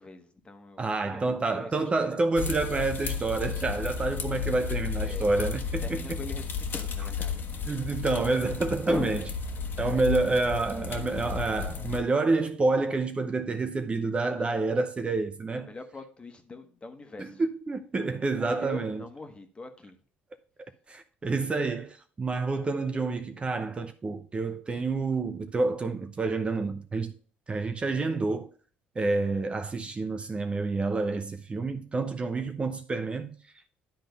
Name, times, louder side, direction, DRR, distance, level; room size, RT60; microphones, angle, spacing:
voice 1, 0.0-2.2 5.0-5.3 5.6-7.4 8.8-9.1 14.3-14.6 15.5-17.4 18.3-20.0, left 3 dB, 25° left, 1.4 m, -42 dB
voice 2, 0.8-6.2 7.7-9.2 9.8-15.7 17.2-19.0 20.9-27.1 27.5-28.5 29.0-33.4, right 3 dB, 25° right, 0.8 m, -28 dB
sound 1, 2.4-12.0, left 6 dB, 50° left, 1.5 m, -33 dB
10.5 x 3.8 x 5.3 m
supercardioid pair, 85°, 4 cm